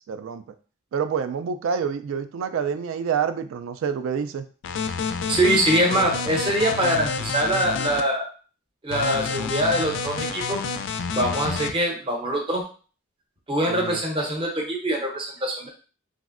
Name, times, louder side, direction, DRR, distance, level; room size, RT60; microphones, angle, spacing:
voice 1, 0.1-0.4 0.9-4.5 13.6-14.0, right 7 dB, 80° right, 11 dB, 0.3 m, -27 dB
sound 1, 4.6-8.0 8.9-11.7, left 5 dB, 65° left, 0.3 m, -29 dB
voice 2, 5.3-8.3 8.8-10.6 11.1-12.6 13.5-15.7, right 1 dB, 25° right, 1 dB, 0.6 m, -23 dB
3.0 x 2.5 x 2.4 m, 0.38 s
head